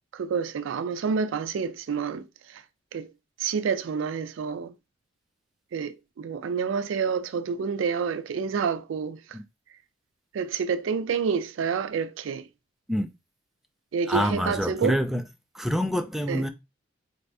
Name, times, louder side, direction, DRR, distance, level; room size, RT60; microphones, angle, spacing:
voice 1, 0.1-2.6 2.9-3.1 3.4-4.7 5.7-9.4 10.3-12.5 13.9-15.0 16.3-16.4, right 6 dB, 85° right, 0.4 m, -28 dB
voice 2, 14.1-15.2 15.5-16.5, equal, ahead, 0.4 m, -26 dB
4.2 x 2.6 x 3.4 m
head